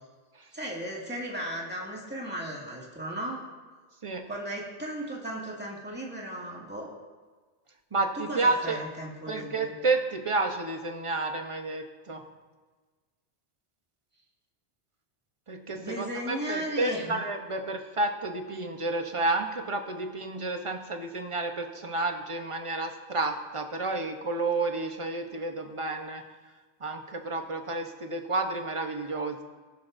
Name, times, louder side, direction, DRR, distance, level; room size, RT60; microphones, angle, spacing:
voice 1, 0.5-3.4 4.3-6.9 8.1-9.8 15.7-17.2, right 1 dB, 10° right, -4 dB, 2.2 m, -36 dB
voice 2, 7.9-8.8 9.3-12.2 15.5-26.2 26.8-29.4, right 3 dB, 30° right, 4 dB, 1.0 m, -30 dB
18.0 x 11.5 x 2.7 m, 1.4 s
omnidirectional pair, 1.1 m